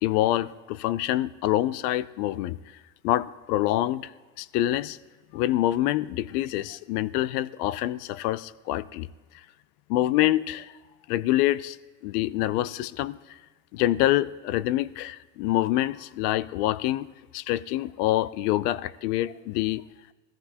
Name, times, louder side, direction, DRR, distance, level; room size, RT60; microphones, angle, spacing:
voice 1, 0.0-2.6 3.0-4.1 4.4-5.0 5.3-9.1 9.9-10.7 11.1-11.8 12.0-13.2 13.7-17.1 17.3-19.8, left 14 dB, 70° left, 19 dB, 0.5 m, -26 dB
18.5 x 14.0 x 2.8 m, 1.2 s
supercardioid pair, 160°, 48 cm